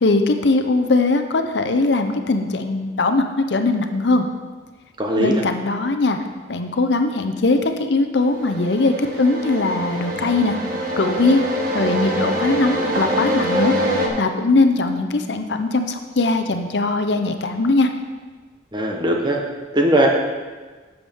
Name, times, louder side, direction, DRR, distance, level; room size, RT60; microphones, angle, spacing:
voice 1, 0.0-4.3 5.2-6.2 6.5-10.6 11.0-11.4 11.7-13.7 14.2-17.9, left 3 dB, 75° left, 6 dB, 0.7 m, -20 dB
voice 2, 5.0-5.3 18.7-19.4 19.7-20.1, right 1 dB, 25° right, 0 dB, 1.1 m, -18 dB
sound 1, 8.2-14.1, right 1 dB, 50° right, 1.4 m, -24 dB
11.5 x 7.2 x 3.6 m, 1.4 s
head